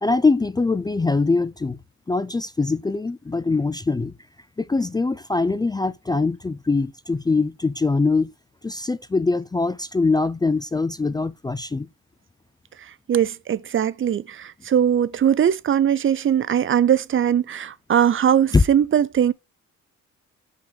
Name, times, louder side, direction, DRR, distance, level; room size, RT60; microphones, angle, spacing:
voice 1, 0.0-1.8 2.1-4.1 4.6-8.3 8.6-11.9 18.5-18.6, left 3 dB, 15° left, 0.4 m, -22 dB
voice 2, 12.8-19.3, right 9 dB, 40° right, 0.6 m, -20 dB
5.8 x 5.6 x 3.4 m
cardioid pair, 90°, 30 cm